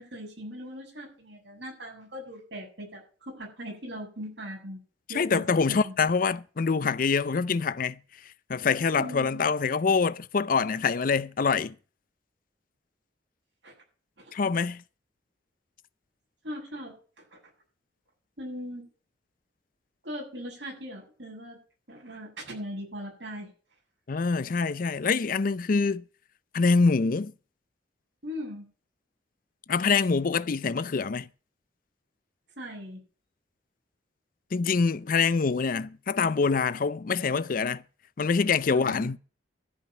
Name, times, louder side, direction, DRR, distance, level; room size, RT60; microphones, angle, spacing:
voice 1, 0.0-4.8 5.1-5.9 9.0-9.5 13.6-13.7 14.2-14.3 16.4-16.9 18.4-18.9 20.0-21.6 21.9-23.5 28.2-28.7 32.6-33.0 38.7-39.1, equal, 75° right, 7.3 m, -39 dB
voice 2, 5.1-8.0 8.5-11.7 14.3-14.8 24.1-26.0 26.5-27.3 29.7-31.3 34.5-37.8 38.2-39.2, left 5 dB, 50° left, 0.5 m, -25 dB
13.5 x 5.1 x 8.9 m
head